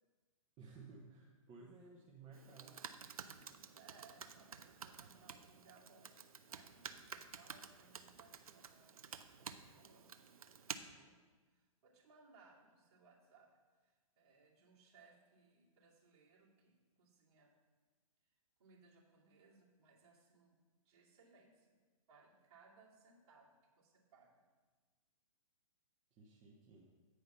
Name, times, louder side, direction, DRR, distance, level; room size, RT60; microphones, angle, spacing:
voice 1, 0.6-2.8 26.1-26.9, right 4 dB, 25° right, -3 dB, 1.1 m, -57 dB
Computer keyboard, 2.3-10.8, right 6 dB, 85° right, 0.6 m, -52 dB
voice 2, 3.5-9.0 9.4-10.1 10.5-17.6 18.2-18.3 18.6-20.6 20.8-21.8 22.0-24.5, right 4 dB, 50° right, -5 dB, 2.7 m, -66 dB
9.1 x 4.9 x 5.7 m, 1.4 s
hypercardioid pair, 135°, 18 cm